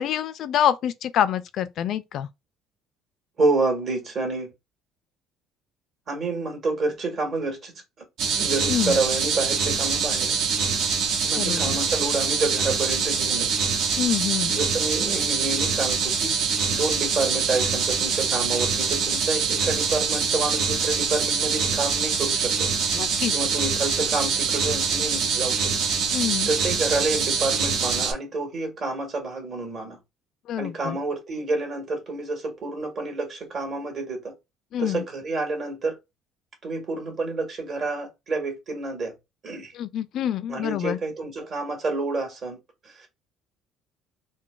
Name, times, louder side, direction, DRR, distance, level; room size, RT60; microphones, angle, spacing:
voice 1, 0.0-2.3 8.7-9.0 11.4-11.8 14.0-14.6 22.9-23.3 26.1-26.5 30.5-31.0 34.7-35.0 39.7-41.0, left 10 dB, 60° left, 0.3 m, -26 dB
voice 2, 3.4-4.5 6.1-7.7 8.3-10.4 11.2-13.6 14.5-16.3 16.7-22.7 23.3-25.7 26.0-26.2 26.5-30.0 30.6-34.3 34.8-36.0 36.6-39.2 39.4-39.7 40.5-43.2, right 3 dB, 45° right, 1.5 m, -29 dB
sound 1, 8.2-28.1, right 5 dB, 70° right, 0.7 m, -24 dB
3.8 x 2.1 x 2.4 m
cardioid pair, 110°, 0 cm